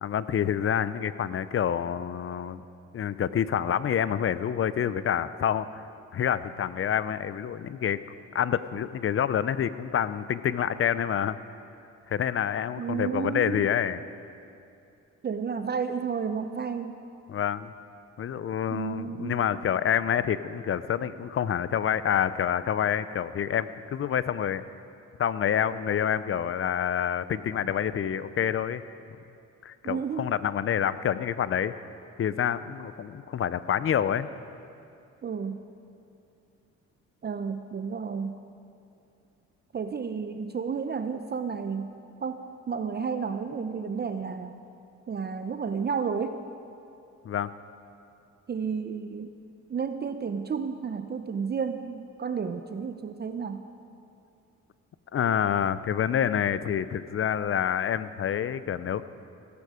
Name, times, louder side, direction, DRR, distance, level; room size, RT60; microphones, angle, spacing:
voice 1, 0.0-2.6 2.9-5.8 6.1-8.0 8.3-11.4 12.1-14.0 17.3-17.7 18.2-24.6 25.2-28.8 29.6-31.7 32.2-34.3 47.2-47.5 55.1-59.0, left 9 dB, 45° left, 15 dB, 0.6 m, -27 dB
voice 2, 12.8-13.7 15.2-17.0 18.7-19.4 29.8-30.2 35.2-35.6 37.2-38.4 39.7-41.9 42.2-44.5 45.1-46.4 48.5-49.4 49.7-53.6, right 6 dB, 35° right, 9 dB, 0.7 m, -31 dB
17.0 x 15.5 x 5.0 m, 2.6 s
cardioid pair, 90°, 30 cm